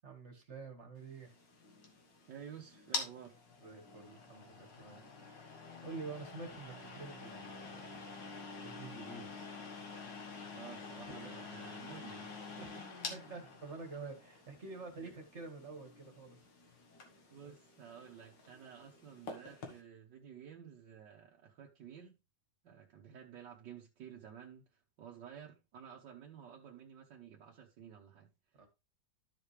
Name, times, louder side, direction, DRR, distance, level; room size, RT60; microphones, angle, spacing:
voice 1, 0.0-1.3 3.6-8.0 8.6-9.5 11.0-11.3 12.6-12.7 13.1-16.4 28.5-28.7, right 4 dB, 40° right, 2.0 m, -48 dB
sound 1, 1.1-19.8, left 4 dB, 75° left, 2.2 m, -48 dB
voice 2, 2.3-3.4 10.5-12.9 17.3-22.2 22.6-28.7, right 8 dB, 75° right, 1.7 m, -53 dB
13.0 x 5.1 x 3.3 m
omnidirectional pair, 1.9 m